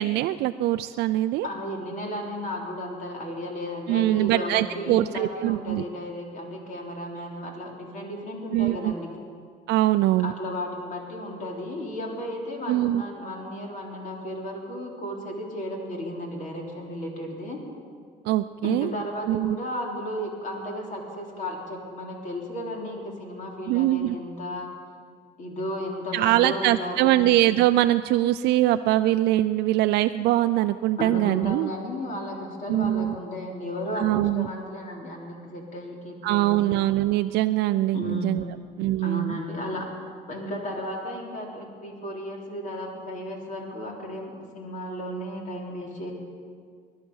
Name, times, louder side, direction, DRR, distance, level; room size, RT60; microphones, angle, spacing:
voice 1, 0.0-1.5 3.9-5.8 8.5-8.9 9.7-10.3 12.7-13.0 18.3-18.9 19.3-19.6 23.7-24.2 26.1-31.7 32.7-33.2 34.0-34.5 36.2-38.4 38.8-39.4, right 15 dB, 80° right, 9 dB, 0.4 m, -23 dB
voice 2, 1.4-9.1 10.2-17.6 18.6-24.7 25.4-27.2 31.0-36.7 37.9-38.6 39.0-39.9 40.3-46.1, left 1 dB, 50° left, 0 dB, 3.5 m, -34 dB
20.5 x 11.5 x 5.5 m, 2.1 s
cardioid pair, 110°, 17 cm